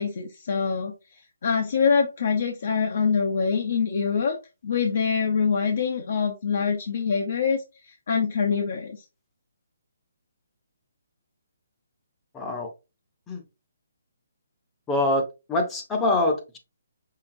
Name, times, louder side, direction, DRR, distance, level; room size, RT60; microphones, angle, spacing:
voice 1, 0.0-4.4 4.6-9.1, left 6 dB, 55° left, 0.7 m, -25 dB
voice 2, 12.3-12.7 13.3-13.4 14.9-16.6, left 2 dB, 10° left, 0.7 m, -25 dB
5.6 x 3.4 x 2.6 m
hypercardioid pair, 160°, 0 cm